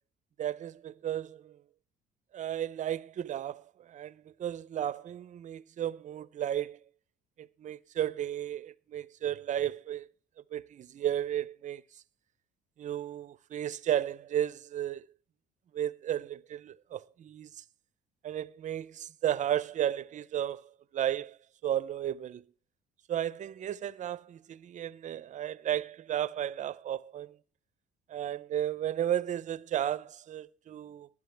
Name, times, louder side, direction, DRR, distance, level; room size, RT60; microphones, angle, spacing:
voice 1, 0.4-1.6 2.3-6.8 7.4-10.1 10.5-11.8 12.8-15.1 15.7-17.6 18.2-21.4 21.6-22.4 23.1-27.4 28.1-31.1, right 11 dB, 45° right, 0.6 m, -34 dB
19.0 x 11.0 x 3.4 m
cardioid pair, 110°, 17 cm